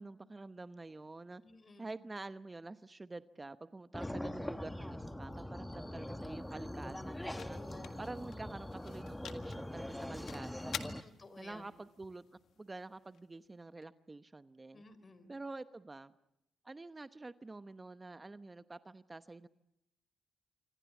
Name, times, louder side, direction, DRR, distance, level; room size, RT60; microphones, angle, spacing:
voice 1, 0.0-1.4 1.8-7.6 8.0-11.0 11.4-14.8 15.3-16.1 16.6-19.5, right 2 dB, 25° right, 12 dB, 0.9 m, -48 dB
voice 2, 1.4-1.9 4.0-4.4 7.3-7.9 11.0-11.6 14.7-15.3, left 3 dB, 35° left, 14 dB, 4.0 m, -53 dB
sound 1, 3.9-11.0, left 1 dB, 10° left, 1.3 m, -42 dB
sound 2, 5.8-13.8, left 8 dB, 70° left, 1.8 m, -51 dB
26.5 x 25.5 x 7.2 m, 0.86 s
supercardioid pair, 55°, 0 cm